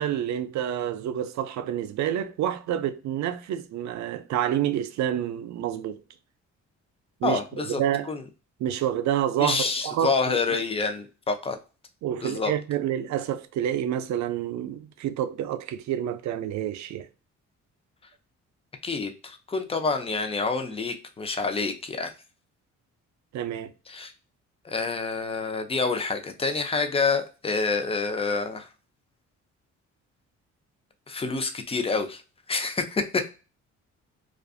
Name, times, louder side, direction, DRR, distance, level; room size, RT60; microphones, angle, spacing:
voice 1, 0.0-6.0 7.2-8.1 8.6-10.4 12.0-17.1 23.3-23.7, right 10 dB, 65° right, 0.4 m, -28 dB
voice 2, 7.2-7.8 8.1-8.2 9.4-11.6 12.2-12.5 18.8-22.1 23.9-24.1 24.6-28.7 31.1-32.2 32.5-33.3, left 4 dB, 20° left, 0.5 m, -27 dB
2.4 x 2.4 x 2.3 m
cardioid pair, 90°, 30 cm